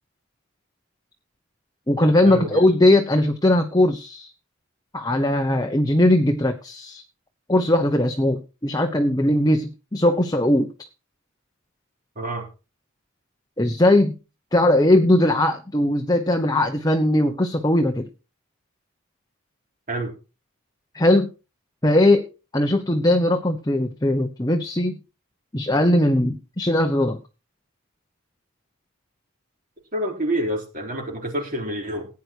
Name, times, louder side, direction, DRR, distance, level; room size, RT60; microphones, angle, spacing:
voice 1, 1.9-4.3 4.9-7.0 7.5-10.9 13.6-14.2 14.5-18.1 20.9-21.3 21.8-22.2 22.5-25.0 25.5-27.2, left 1 dB, 15° left, 5 dB, 1.0 m, -19 dB
voice 2, 29.9-32.1, right 1 dB, 35° right, 0 dB, 4.0 m, -27 dB
16.0 x 9.6 x 4.7 m, 0.32 s
head